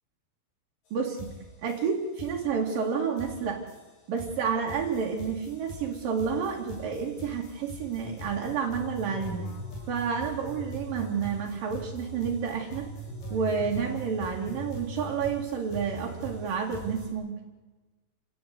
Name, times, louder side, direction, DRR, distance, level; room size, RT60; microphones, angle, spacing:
sound 1, 0.9-1.0 1.2-17.1, equal, 60° left, 9.3 m, -41 dB
voice 1, 0.9-1.3 1.6-3.6 4.1-9.4 9.9-12.9 13.3-17.4, right 6 dB, 55° right, -1 dB, 3.9 m, -30 dB
29.0 x 18.0 x 9.6 m, 1.2 s
omnidirectional pair, 5.0 m